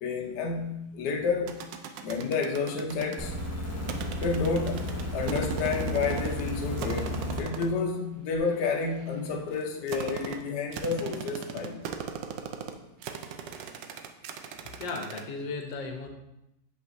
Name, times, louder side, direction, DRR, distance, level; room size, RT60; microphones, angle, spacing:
voice 1, 0.0-1.6 2.0-3.3 4.2-11.8, left 4 dB, 70° left, 2 dB, 1.3 m, -30 dB
sound 1, 1.5-3.2 3.9-6.5 6.8-7.8 8.5-15.2, right 8 dB, 80° right, 1.2 m, -37 dB
sound 2, 3.2-7.4 8.4-8.5, left 1 dB, 10° left, 0.8 m, -33 dB
voice 2, 14.8-16.1, left 3 dB, 85° left, 4 dB, 1.5 m, -35 dB
7.3 x 5.5 x 2.6 m, 0.88 s
omnidirectional pair, 1.9 m